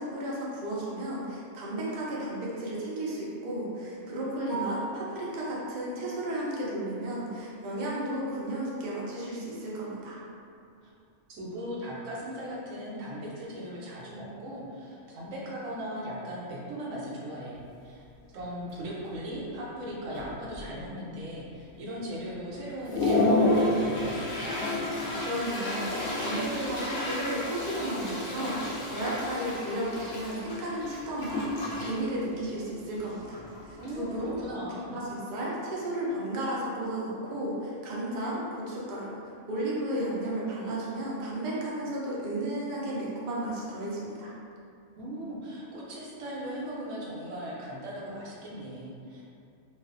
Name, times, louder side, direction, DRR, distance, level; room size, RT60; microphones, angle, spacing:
voice 1, 0.0-10.2 25.2-34.4 34.9-44.3, right 1 dB, 55° right, -6 dB, 0.5 m, -33 dB
Piano, 4.5-8.4 8.8-8.9 9.4-9.5 9.9-10.0 13.1-13.2 21.6-21.9, right 3 dB, 15° left, 0.7 m, -43 dB
voice 2, 11.3-18.0 18.3-24.6 33.8-35.0 45.0-49.2, equal, 85° right, -5 dB, 1.0 m, -38 dB
Toilet flush, 17.6-17.7 18.2-18.4 18.7-19.3 19.8-19.9 20.1-20.9 21.4-21.5 22.0-22.1 22.5-34.5, left 2 dB, 65° left, 0.7 m, -31 dB
2.4 x 2.3 x 2.4 m, 2.5 s
omnidirectional pair, 1.3 m